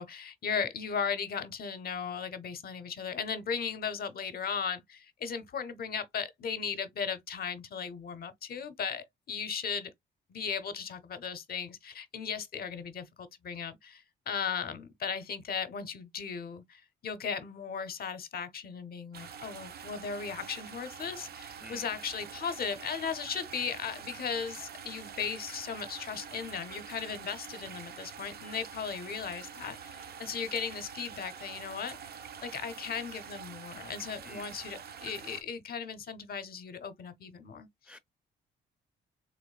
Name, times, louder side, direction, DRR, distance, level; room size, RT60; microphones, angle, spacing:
voice 1, 0.0-9.9 10.3-32.0 32.4-37.7, left 6 dB, 50° left, 0.7 m, -37 dB
sound 1, 19.1-35.4, right 7 dB, 50° right, 0.5 m, -46 dB
voice 2, 21.6-22.0 34.2-34.5 37.9-38.0, left 1 dB, 5° right, 0.5 m, -49 dB
3.4 x 3.0 x 2.3 m
cardioid pair, 90°, 20 cm